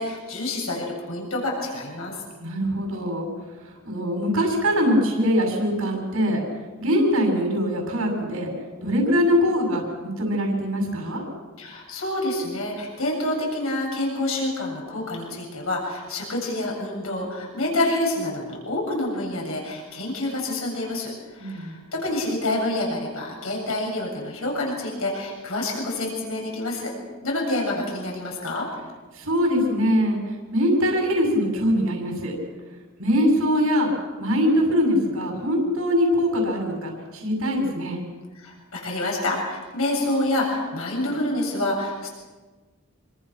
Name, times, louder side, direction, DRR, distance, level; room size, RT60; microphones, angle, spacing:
voice 1, 0.0-2.2 11.6-26.9 27.2-28.7 38.3-42.1, left 1 dB, 75° left, -1 dB, 7.6 m, -27 dB
voice 2, 2.4-3.3 3.8-6.4 6.8-8.5 8.8-11.2 21.4-21.8 29.1-30.2 30.5-32.3 33.0-33.9 34.2-38.0, equal, 85° right, 0 dB, 7.0 m, -22 dB
27.0 x 25.0 x 6.1 m, 1.3 s
head